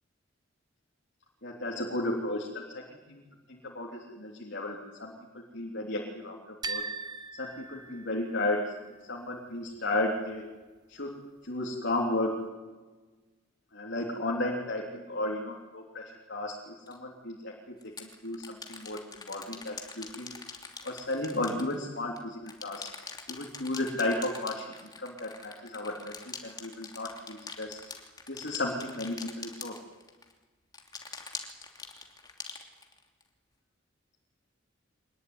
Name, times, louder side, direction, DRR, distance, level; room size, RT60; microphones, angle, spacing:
voice 1, 1.4-3.2 3.5-6.8 7.4-8.6 9.1-10.4 10.9-12.4 13.7-19.0 19.3-20.3 20.8-22.9 23.3-27.8 28.3-29.8, left 2 dB, 60° left, -1 dB, 3.5 m, -34 dB
sound 1, 6.6-8.6, right 4 dB, 20° right, 1.0 m, -39 dB
sound 2, 16.9-17.0 17.8-22.2 22.5-30.3 30.7-33.2, left 4 dB, 20° left, 3.0 m, -44 dB
25.0 x 20.5 x 9.7 m, 1.3 s
head